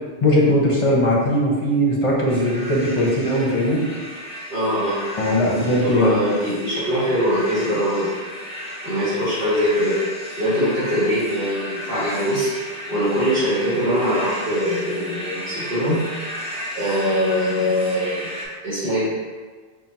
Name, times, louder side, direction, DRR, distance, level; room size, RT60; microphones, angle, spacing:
voice 1, 0.2-3.8 5.2-6.2, equal, 35° left, -2 dB, 0.6 m, -19 dB
sound 1, 2.3-18.5, equal, 5° right, 0.6 m, -34 dB
voice 2, 4.5-5.0 5.8-8.1 8.8-10.0 10.4-12.5 12.9-16.0 16.7-18.3 18.6-19.1, equal, 60° right, -13 dB, 1.6 m, -22 dB
4.4 x 2.1 x 4.0 m, 1.5 s
omnidirectional pair, 1.1 m